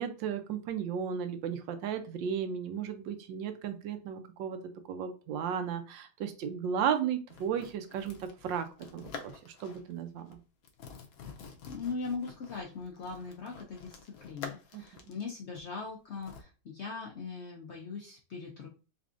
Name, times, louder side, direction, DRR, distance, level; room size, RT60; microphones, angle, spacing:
voice 1, 0.0-4.6 4.9-8.7 8.9-10.4 14.7-15.1, right 8 dB, 85° right, 9 dB, 1.3 m, -34 dB
sound 1, 7.3-9.9 10.2-10.4 10.6-16.4, left 5 dB, 65° left, 0.9 m, -48 dB
voice 2, 11.7-18.7, left 4 dB, 85° left, 0 dB, 0.6 m, -40 dB
4.1 x 3.4 x 2.5 m, 0.34 s
omnidirectional pair, 1.9 m